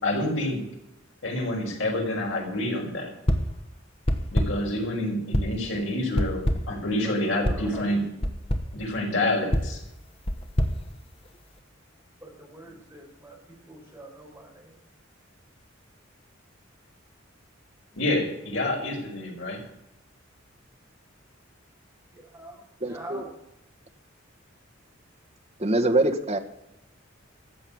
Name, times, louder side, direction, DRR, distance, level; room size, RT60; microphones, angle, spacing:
voice 1, 0.0-0.6 1.2-3.1 4.3-8.0 8.7-9.8 17.9-19.6, left 1 dB, 70° left, 0 dB, 5.2 m, -28 dB
sound 1, 3.3-3.6 4.1-4.7 5.3-5.7 6.2-6.8 7.4-7.7 8.2-8.8 9.5-11.6, equal, 30° left, 1.1 m, -27 dB
voice 2, 7.0-8.1 12.2-14.8 22.1-23.3, right 2 dB, 10° right, -1 dB, 4.8 m, -44 dB
voice 3, 22.8-23.2 25.6-26.4, right 2 dB, 35° right, 6 dB, 1.4 m, -24 dB
14.0 x 7.7 x 8.6 m, 0.87 s
head